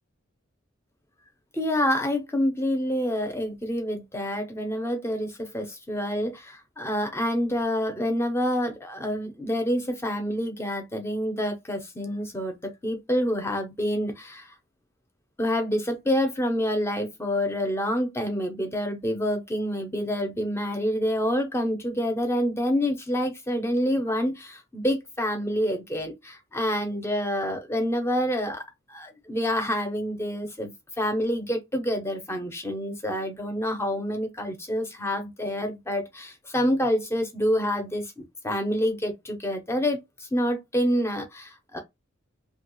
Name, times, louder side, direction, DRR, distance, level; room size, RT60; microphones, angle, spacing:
voice 1, 1.5-14.5 15.4-28.6 28.9-41.8, equal, 15° left, 0.7 m, -27 dB
2.9 x 2.3 x 3.0 m
head